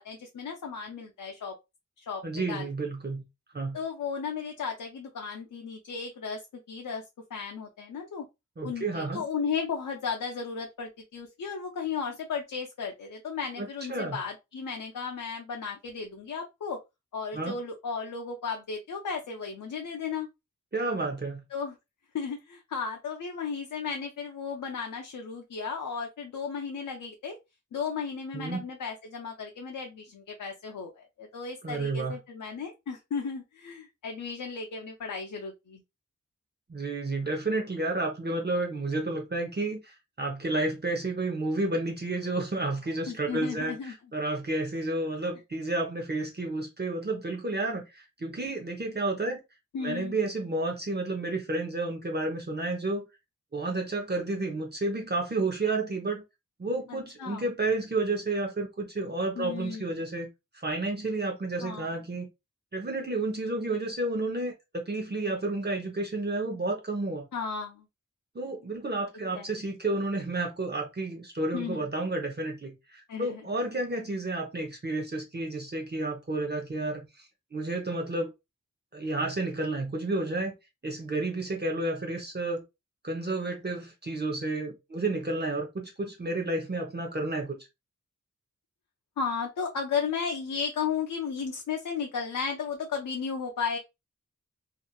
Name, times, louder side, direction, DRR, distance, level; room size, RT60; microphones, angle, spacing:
voice 1, 0.0-1.6 2.0-2.7 3.7-6.4 6.7-7.0 7.3-8.3 8.6-16.8 17.1-20.3 21.5-21.8 22.1-27.4 27.7-35.8 43.1-43.9 49.7-50.2 56.9-57.4 59.4-59.9 61.6-61.9 67.3-67.9 69.3-69.5 71.5-71.9 73.1-73.4 89.2-93.8, left 6 dB, 90° left, 0.5 m, -34 dB
voice 2, 2.2-3.2 3.5-3.8 8.6-9.3 13.6-14.2 17.3-17.6 20.7-21.4 28.3-28.6 31.6-32.2 36.7-49.4 49.8-53.0 53.5-56.2 56.6-60.3 60.5-62.3 62.7-67.3 68.3-77.3 77.5-78.3 78.9-80.5 80.8-82.6 83.0-87.6, right 2 dB, 35° right, 0.6 m, -31 dB
2.9 x 2.4 x 2.2 m
wide cardioid pair, 85°, 31 cm